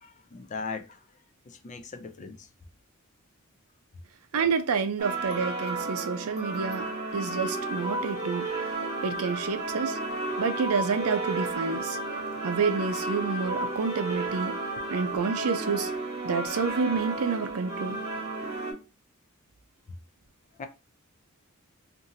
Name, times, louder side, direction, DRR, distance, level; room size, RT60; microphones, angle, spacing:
voice 1, 0.0-1.0 1.5-2.5 20.6-20.7, left 4 dB, 35° left, 0.4 m, -39 dB
voice 2, 4.3-8.5 9.0-10.0 10.4-12.0 12.4-14.6 14.9-15.9 16.2-18.0, right 5 dB, 85° right, 0.5 m, -29 dB
sound 1, 5.0-18.7, right 2 dB, 30° right, 1.2 m, -32 dB
2.6 x 2.5 x 2.7 m
head